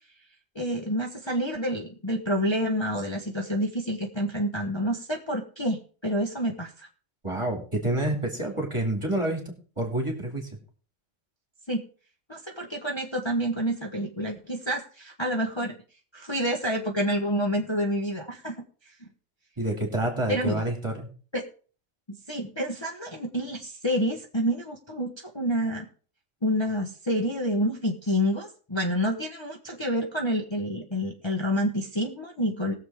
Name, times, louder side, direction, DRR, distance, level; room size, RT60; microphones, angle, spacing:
voice 1, 0.5-6.9 11.7-11.8 12.3-15.7 16.1-18.6 20.3-20.6 21.3-21.4 22.3-25.9 26.4-32.7, equal, 25° left, 0 dB, 1.1 m, -28 dB
voice 2, 7.2-10.5 19.6-21.1, right 1 dB, 25° right, 2 dB, 2.5 m, -28 dB
20.0 x 7.0 x 3.6 m, 0.40 s
omnidirectional pair, 1.3 m